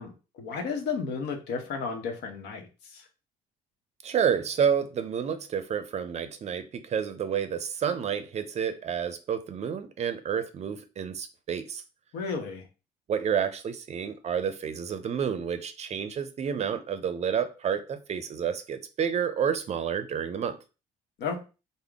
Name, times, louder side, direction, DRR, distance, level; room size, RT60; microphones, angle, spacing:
voice 1, 0.0-3.0 12.1-12.6 21.2-21.4, left 5 dB, 80° left, 0.9 m, -33 dB
voice 2, 4.0-11.8 13.1-20.6, right 7 dB, 40° right, 0.5 m, -29 dB
3.6 x 2.1 x 3.4 m
cardioid pair, 110°, 17 cm